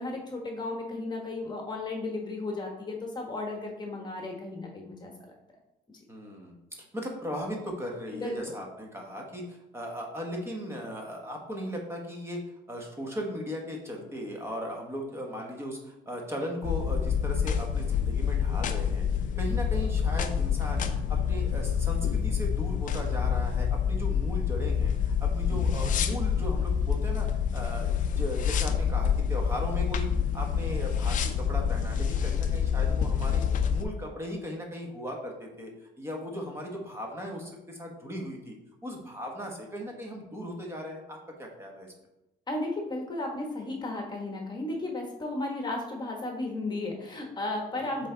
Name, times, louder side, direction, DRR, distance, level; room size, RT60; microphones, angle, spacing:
voice 1, 0.0-5.3 8.1-8.4 42.5-48.1, left 2 dB, 25° left, 1 dB, 1.2 m, -34 dB
voice 2, 6.1-6.6 6.9-12.4 12.7-19.0 19.4-27.3 27.5-30.1 30.3-33.4 33.7-38.5 38.8-41.9 47.8-48.1, equal, 15° right, 0 dB, 1.3 m, -37 dB
sound 1, 16.6-33.8, left 7 dB, 50° left, 0.6 m, -27 dB
7.4 x 3.5 x 3.9 m, 0.90 s
cardioid pair, 110°, 17 cm